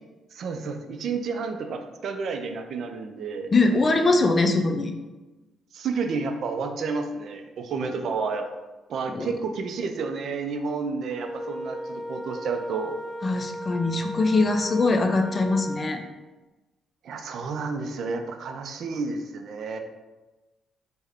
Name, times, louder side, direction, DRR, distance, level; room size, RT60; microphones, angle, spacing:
voice 1, 0.3-3.5 5.7-8.5 8.9-13.0 17.0-19.8, right 4 dB, 65° right, 6 dB, 0.3 m, -30 dB
voice 2, 3.5-4.9 9.1-9.3 13.2-16.0, left 3 dB, 35° left, 5 dB, 0.3 m, -22 dB
Wind instrument woodwind instrument, 11.1-16.0, equal, 20° right, 0.7 m, -36 dB
3.4 x 2.1 x 3.5 m, 1.2 s
cardioid pair, 90°, 0 cm